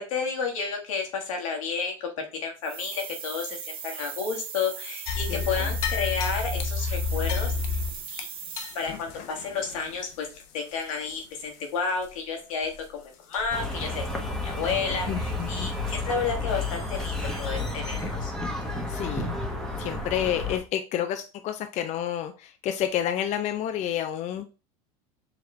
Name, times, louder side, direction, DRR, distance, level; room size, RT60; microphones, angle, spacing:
voice 1, 0.0-7.8 8.1-8.3 8.7-10.3 10.5-14.1 14.4-18.3, left 5 dB, 85° left, 2 dB, 1.4 m, -31 dB
sound 1, 2.6-9.1, right 8 dB, 35° right, 0.5 m, -39 dB
sound 2, 5.1-11.6 12.0-12.1 12.6-12.9 13.3-13.7 14.0-14.1 14.7-14.8 17.2-17.3 17.9-18.0, left 5 dB, 60° left, 0.8 m, -31 dB
voice 2, 5.3-5.8 15.1-15.7 18.9-19.3 19.8-24.5, left 10 dB, 45° left, 8 dB, 0.4 m, -30 dB
sound 3, 13.5-20.6, left 2 dB, 5° left, 1.0 m, -31 dB
4.8 x 3.1 x 3.1 m, 0.32 s
hypercardioid pair, 95°, 17 cm